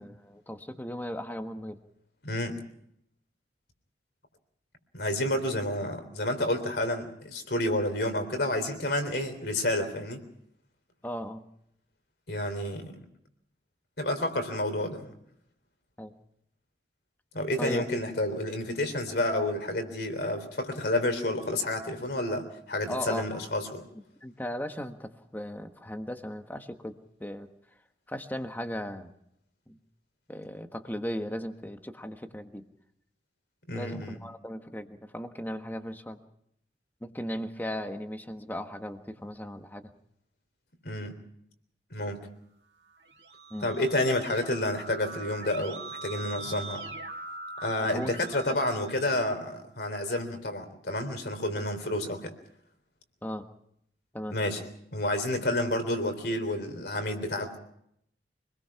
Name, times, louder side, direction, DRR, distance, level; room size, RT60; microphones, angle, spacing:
voice 1, 0.0-1.8 11.0-11.4 16.0-16.1 17.6-17.8 22.9-23.5 24.2-27.5 28.1-29.1 29.7-29.8 30.3-32.6 33.7-36.2 37.0-39.9 43.5-43.7 47.8-48.1 48.5-48.6 53.2-53.5 54.1-54.3, equal, 10° left, 7 dB, 1.4 m, -37 dB
voice 2, 2.2-2.6 4.9-10.2 12.3-12.9 14.0-15.0 17.3-23.8 33.7-34.2 40.8-41.2 41.9-42.2 43.6-46.8 47.6-52.3 54.3-54.6 54.9-57.6, left 1 dB, 60° left, 6 dB, 3.6 m, -30 dB
Keyboard (musical), 42.9-49.5, right 2 dB, 75° right, 2.4 m, -42 dB
25.5 x 20.0 x 5.8 m, 0.73 s
head